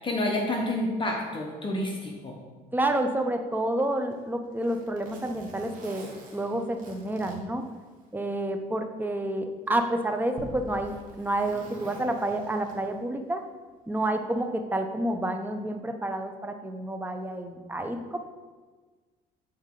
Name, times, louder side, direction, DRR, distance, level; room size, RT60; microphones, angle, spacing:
voice 1, 0.0-2.4, left 1 dB, 30° left, -1 dB, 1.0 m, -29 dB
voice 2, 2.7-7.6 8.1-13.4 13.9-18.2, right 1 dB, 10° right, 6 dB, 0.6 m, -29 dB
Zipper (clothing), 3.9-8.4 8.8-8.9 9.7-13.1 14.3-14.5, right 3 dB, 55° right, 1.5 m, -50 dB
sound 1, 10.4-13.0, right 1 dB, 30° right, 1.0 m, -45 dB
8.2 x 4.2 x 3.7 m, 1.4 s
cardioid pair, 110°, 17 cm